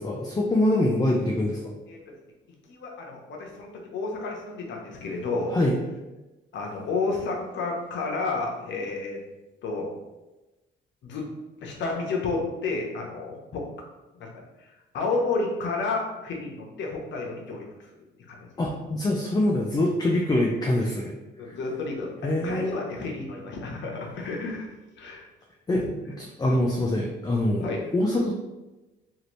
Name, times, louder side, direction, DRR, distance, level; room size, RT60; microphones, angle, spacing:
voice 1, 0.0-1.8 5.5-5.8 18.6-21.1 21.5-21.6 22.2-22.9 25.7-27.6 27.9-28.3, left 1 dB, 20° left, -1 dB, 0.4 m, -24 dB
voice 2, 2.7-5.6 6.5-9.2 9.6-9.9 11.0-11.2 11.6-13.6 14.2-14.3 14.6-17.6 18.3-18.5 21.4-22.1 22.4-24.7 25.0-25.3 25.8-25.9 27.6-27.9, left 3 dB, 70° left, 0 dB, 0.8 m, -31 dB
2.8 x 2.5 x 3.0 m, 1.1 s
cardioid pair, 90°, 20 cm